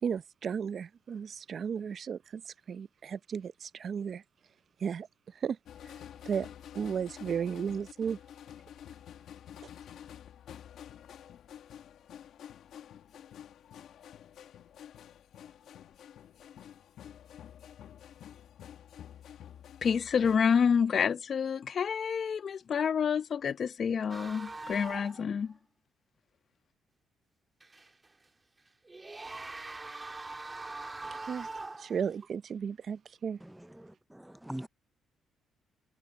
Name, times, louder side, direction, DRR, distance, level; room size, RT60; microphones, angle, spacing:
voice 1, 0.0-4.2 4.8-5.6 5.8-5.9 6.2-6.5 6.7-8.2 31.1-31.5 31.8-33.4, right 7 dB, 55° right, 0.6 m, -34 dB
sound 1, 5.7-20.4, left 10 dB, 75° left, 1.6 m, -49 dB
voice 2, 19.8-25.6, left 6 dB, 50° left, 0.8 m, -28 dB
sound 2, 24.1-25.3 25.5-25.6 27.6-28.0 28.8-32.2, right 3 dB, 20° right, 2.6 m, -42 dB
voice 3, 33.4-34.7, right 1 dB, 5° right, 0.5 m, -43 dB
cardioid pair, 90°, 0 cm